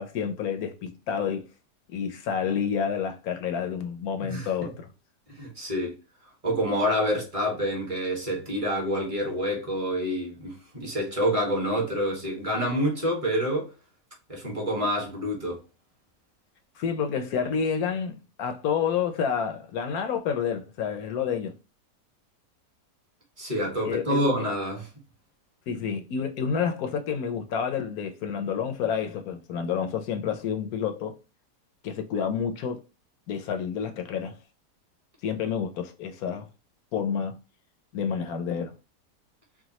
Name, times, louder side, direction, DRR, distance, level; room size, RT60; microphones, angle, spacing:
voice 1, 0.0-1.5 1.9-4.9 16.8-21.6 23.8-24.2 25.7-31.1 31.8-32.8 33.3-34.3 35.2-36.5 36.9-37.4 37.9-38.8, left 7 dB, 70° left, 1.1 m, -29 dB
voice 2, 4.2-4.7 5.3-5.9 6.4-13.7 14.3-15.6 23.4-24.9, equal, 20° right, 1.3 m, -27 dB
4.8 x 2.3 x 2.9 m
omnidirectional pair, 1.8 m